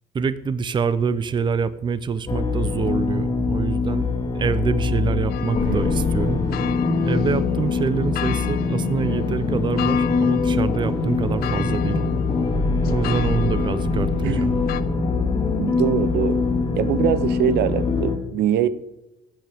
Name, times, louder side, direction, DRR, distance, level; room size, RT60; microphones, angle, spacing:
voice 1, 0.1-4.1 4.3-6.4 7.0-12.0 12.9-14.5, right 6 dB, 30° right, 15 dB, 0.6 m, -25 dB
sound 1, 2.3-18.2, left 4 dB, 30° left, 2.0 m, -23 dB
sound 2, 5.3-14.8, left 10 dB, 65° left, 0.6 m, -34 dB
voice 2, 5.6-6.1 14.2-14.4 15.6-16.4 16.8-18.7, right 10 dB, 80° right, 14 dB, 0.7 m, -23 dB
13.0 x 8.9 x 3.5 m, 0.95 s
cardioid pair, 110°, 17 cm